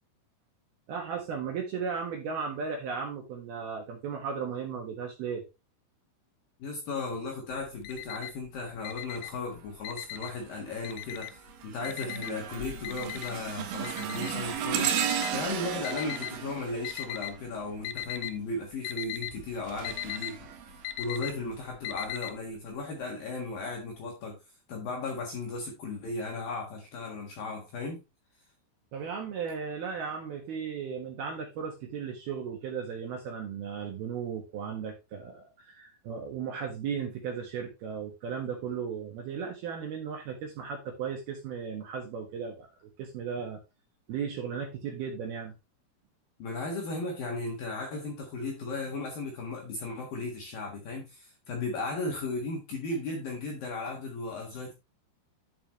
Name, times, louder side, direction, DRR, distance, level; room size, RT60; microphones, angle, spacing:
voice 1, 0.9-5.4 28.9-43.6 44.1-45.5, right 6 dB, 65° right, 2.8 m, -36 dB
voice 2, 6.6-20.4 20.7-24.4 24.7-28.0 46.4-54.7, left 3 dB, 60° left, 2.6 m, -36 dB
Alarm, 7.5-8.5 8.8-10.5 10.8-11.5 11.8-16.3 16.8-17.5 17.7-18.4 18.6-22.3, left 13 dB, 85° left, 3.3 m, -38 dB
sound 1, 10.2-10.5 11.0-17.8 19.1-21.3 21.9-22.1 23.0-23.1, right 9 dB, 85° right, 2.1 m, -35 dB
11.0 x 5.6 x 3.1 m
omnidirectional pair, 6.0 m